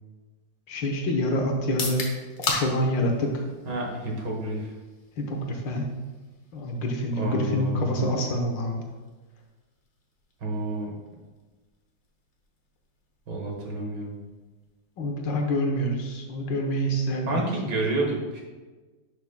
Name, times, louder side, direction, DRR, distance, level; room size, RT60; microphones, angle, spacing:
voice 1, 0.7-2.0 2.5-3.4 5.2-5.9 6.5-8.8 15.0-17.5, equal, 70° left, 2 dB, 1.7 m, -27 dB
sound 1, 1.6-15.5, left 3 dB, 45° left, 1.1 m, -40 dB
voice 2, 3.7-4.7 7.2-8.1 10.4-10.9 13.3-14.2 17.3-18.4, right 2 dB, 65° right, -1 dB, 2.0 m, -29 dB
10.5 x 6.2 x 2.2 m, 1.3 s
omnidirectional pair, 2.1 m